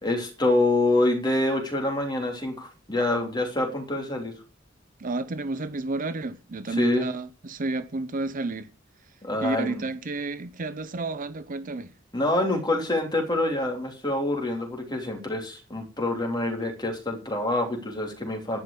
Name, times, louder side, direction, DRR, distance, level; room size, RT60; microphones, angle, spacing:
voice 1, 0.0-4.3 6.7-7.1 9.2-9.8 12.1-18.6, left 2 dB, 20° left, 3.2 m, -26 dB
voice 2, 5.0-8.7 9.4-11.9, right 2 dB, 45° right, 0.7 m, -31 dB
11.0 x 5.9 x 8.4 m
head